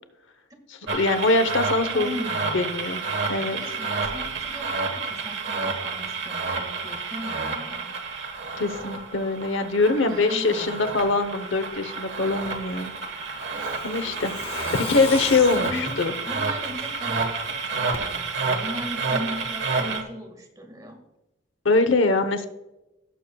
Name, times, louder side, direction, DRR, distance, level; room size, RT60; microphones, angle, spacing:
voice 1, 0.9-2.2 2.5-3.0 3.3-3.6 8.6-12.9 13.8-14.3 14.7-16.1 21.6-22.5, left 3 dB, 85° left, 10 dB, 0.9 m, -23 dB
sound 1, 0.9-20.0, right 4 dB, 65° right, 1.3 m, -30 dB
voice 2, 1.9-2.6 3.5-8.0 10.0-11.1 15.5-16.0 16.3-21.0, equal, 20° right, 2 dB, 1.7 m, -37 dB
Truck, 12.5-17.2 17.5-17.6 17.9-18.0, left 3 dB, 30° left, 1.3 m, -36 dB
17.0 x 6.9 x 2.3 m, 0.96 s
head